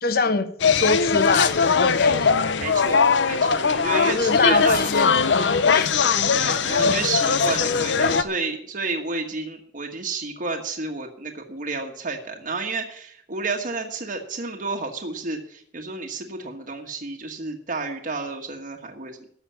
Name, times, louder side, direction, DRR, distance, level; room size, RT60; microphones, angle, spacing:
voice 1, 0.0-2.4 4.1-6.0 6.8-7.0, left 3 dB, 55° left, 10 dB, 1.2 m, -24 dB
sound 1, 0.6-8.2, left 5 dB, 85° left, 0.7 m, -20 dB
voice 2, 2.6-4.8 6.3-19.3, right 3 dB, 50° right, 2 dB, 1.3 m, -30 dB
11.5 x 6.8 x 9.6 m, 0.65 s
head